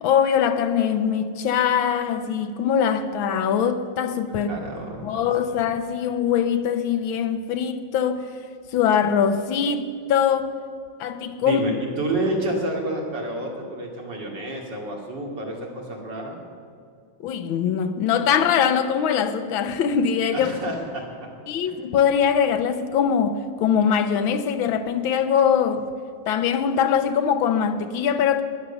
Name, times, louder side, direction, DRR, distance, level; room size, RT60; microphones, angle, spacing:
voice 1, 0.0-4.5 5.0-8.2 8.7-10.5 11.0-11.6 17.2-20.5 21.5-25.9 26.3-28.4, left 7 dB, 80° left, 1.7 m, -22 dB
voice 2, 4.5-5.3 11.4-16.4 20.3-21.3 21.6-21.7, right 1 dB, 60° right, 3.2 m, -29 dB
17.5 x 11.0 x 7.0 m
omnidirectional pair, 2.2 m